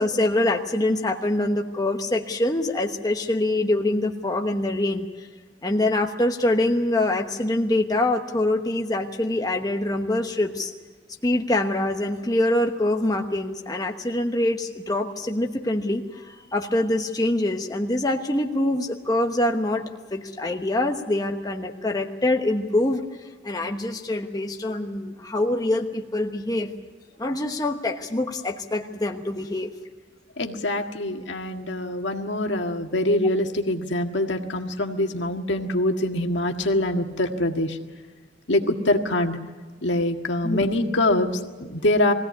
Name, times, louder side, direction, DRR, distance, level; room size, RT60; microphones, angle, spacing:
voice 1, 0.0-5.3 5.6-10.7 11.2-19.8 20.1-23.0 23.4-26.7 27.2-29.7 40.4-40.7, left 1 dB, 20° left, 3 dB, 1.1 m, -24 dB
voice 2, 30.4-37.8 38.5-39.4 39.8-42.1, left 1 dB, 75° left, 4 dB, 1.8 m, -24 dB
22.0 x 16.5 x 9.6 m, 1.4 s
head